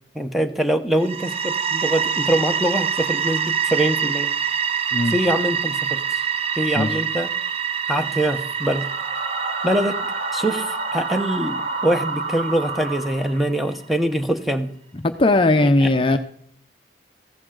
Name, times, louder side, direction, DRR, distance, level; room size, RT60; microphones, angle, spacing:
voice 1, 0.1-4.3 5.1-6.2 6.6-7.3 7.9-8.9 9.6-10.0 10.3-14.7 15.8-15.9, right 1 dB, ahead, 7 dB, 0.9 m, -23 dB
sound 1, 1.0-13.7, right 7 dB, 35° right, 0.5 m, -26 dB
sound 2, 8.5-13.6, right 3 dB, 50° right, 1.4 m, -29 dB
voice 2, 14.9-16.2, left 2 dB, 30° left, 8 dB, 0.6 m, -18 dB
15.5 x 11.0 x 3.9 m, 0.64 s
head